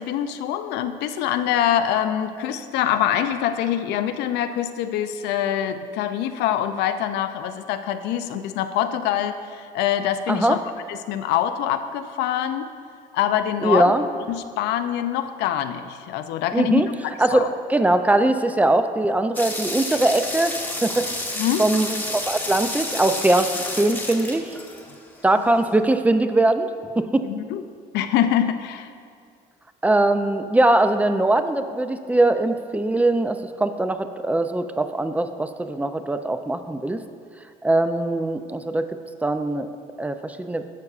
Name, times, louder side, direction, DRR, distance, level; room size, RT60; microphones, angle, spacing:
voice 1, 0.0-10.6 10.9-12.7 13.1-13.9 14.3-16.8 17.3-17.5 21.4-21.7 27.3-27.6 27.9-28.9, left 10 dB, 85° left, 10 dB, 0.4 m, -24 dB
voice 2, 13.6-14.0 16.5-16.9 17.2-17.4 17.7-20.5 20.8-24.5 25.2-26.7 27.0-27.2 29.8-37.0 37.6-39.7 40.0-40.6, right 2 dB, 10° right, 9 dB, 0.3 m, -21 dB
sound 1, 19.3-25.2, left 2 dB, 10° left, 0.9 m, -30 dB
11.5 x 6.6 x 2.4 m, 2.2 s
cardioid pair, 110°, 17 cm